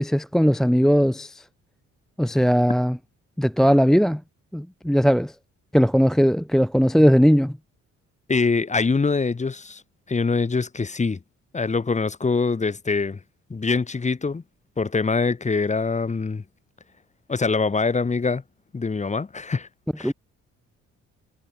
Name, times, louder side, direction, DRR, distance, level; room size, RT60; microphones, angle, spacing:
voice 1, 0.0-1.4 2.2-3.0 3.4-4.2 4.5-5.3 5.7-7.6 20.0-20.1, equal, ahead, 0.6 m, -19 dB
voice 2, 8.3-9.8 10.1-11.2 11.5-13.2 13.5-14.4 14.8-16.4 17.3-18.4 18.7-19.7 20.0-20.1, left 4 dB, 25° left, 1.5 m, -24 dB
cardioid pair, 90°, 30 cm